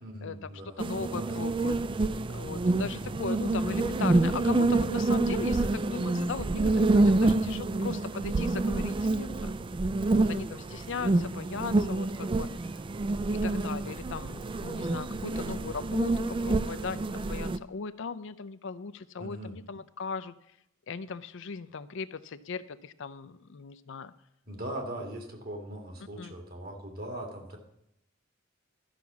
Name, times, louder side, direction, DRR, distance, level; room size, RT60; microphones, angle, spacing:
voice 1, 0.0-1.3 2.9-3.1 7.1-7.4 19.2-19.6 24.5-27.6, right 1 dB, 45° right, 3 dB, 2.0 m, -40 dB
voice 2, 0.8-2.0 2.3-9.5 10.1-12.8 13.3-20.6 20.9-24.1 26.2-26.4, left 5 dB, 65° left, 14 dB, 0.5 m, -38 dB
sound 1, 0.8-17.6, right 2 dB, 25° right, 0.3 m, -27 dB
12.0 x 6.0 x 7.2 m, 0.79 s
head